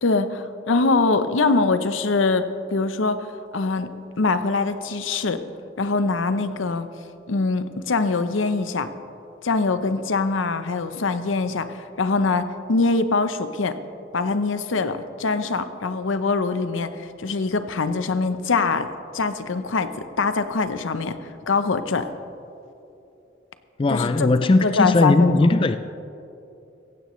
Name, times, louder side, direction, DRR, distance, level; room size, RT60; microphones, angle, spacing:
voice 1, 0.0-2.4 2.7-3.9 4.2-5.4 5.8-6.9 7.3-8.9 9.4-13.8 14.1-18.9 19.1-19.9 20.2-21.2 21.5-22.1 23.9-24.3 24.6-25.4, left 3 dB, 90° left, 0.7 m, -23 dB
voice 2, 23.8-25.8, left 2 dB, 25° left, 0.3 m, -18 dB
17.0 x 15.5 x 3.1 m
head